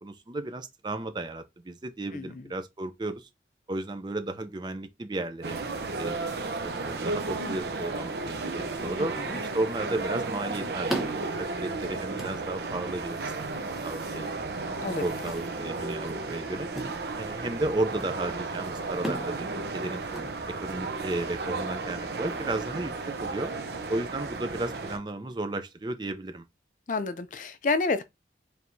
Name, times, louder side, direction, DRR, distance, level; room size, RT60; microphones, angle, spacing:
voice 1, 0.0-3.3 3.7-5.6 6.0-6.2 6.6-14.3 15.0-16.7 17.2-20.0 20.5-22.9 23.2-23.5 23.9-26.4, right 2 dB, 25° right, 0.4 m, -34 dB
voice 2, 2.1-2.4 9.0-9.4 14.8-15.0 26.9-28.0, left 3 dB, 45° left, 0.4 m, -30 dB
sound 1, 5.4-25.0, right 3 dB, 70° right, 0.7 m, -34 dB
sound 2, 10.8-20.9, right 1 dB, ahead, 0.9 m, -41 dB
4.5 x 3.3 x 2.6 m
head